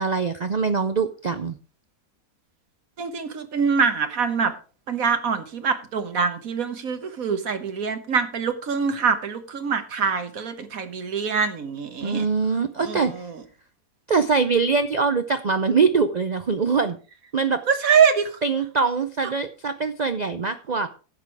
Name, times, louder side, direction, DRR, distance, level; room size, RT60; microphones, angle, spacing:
voice 1, 0.0-1.6 12.0-13.1 14.1-17.0 17.3-17.6 18.4-20.9, right 5 dB, 80° right, 11 dB, 0.3 m, -23 dB
voice 2, 3.0-4.5 4.9-12.3 12.8-13.3 17.7-18.3, right 6 dB, 60° right, 9 dB, 1.6 m, -24 dB
11.5 x 8.2 x 4.8 m, 0.36 s
omnidirectional pair, 1.7 m